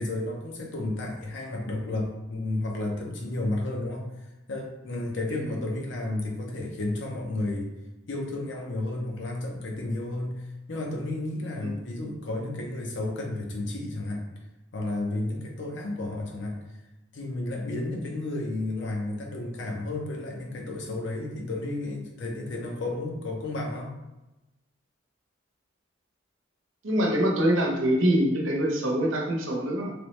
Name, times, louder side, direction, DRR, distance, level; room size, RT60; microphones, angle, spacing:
voice 1, 0.0-7.7 8.1-14.3 14.7-16.6 17.1-23.9, left 2 dB, 65° left, 0 dB, 0.7 m, -32 dB
voice 2, 26.8-29.9, equal, 90° right, 0 dB, 0.8 m, -24 dB
3.3 x 3.1 x 3.1 m, 0.99 s
head